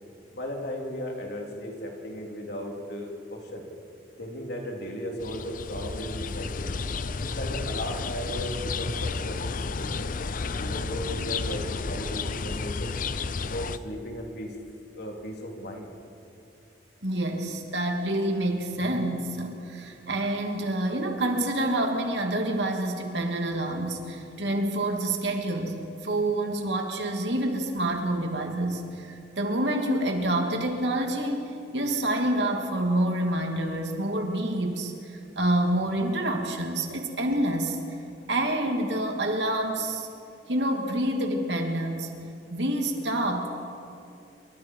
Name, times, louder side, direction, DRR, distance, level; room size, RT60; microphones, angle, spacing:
voice 1, 0.3-3.6 4.2-6.7 7.2-10.1 10.6-12.9 13.5-14.6 14.9-15.9, equal, 65° left, 0 dB, 3.7 m, -36 dB
sound 1, 5.2-13.8, left 4 dB, 50° left, 0.6 m, -32 dB
voice 2, 17.0-37.8 38.3-40.1 40.5-42.1 42.5-43.5, right 1 dB, 75° right, 2 dB, 2.8 m, -27 dB
27.5 x 24.5 x 4.8 m, 2.7 s
head